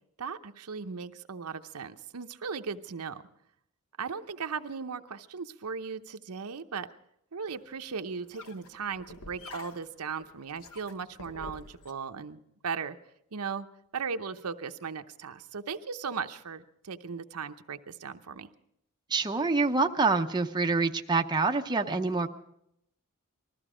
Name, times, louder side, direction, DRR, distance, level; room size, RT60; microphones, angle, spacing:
voice 1, 0.2-3.2 4.0-6.9 7.3-13.0 13.3-13.7 13.9-18.5, right 5 dB, 80° right, 8 dB, 0.8 m, -37 dB
sound 1, 7.5-11.9, left 3 dB, 65° left, 1.1 m, -49 dB
voice 2, 19.1-22.3, right 3 dB, 20° right, 4 dB, 0.7 m, -26 dB
20.5 x 14.5 x 5.0 m, 0.76 s
head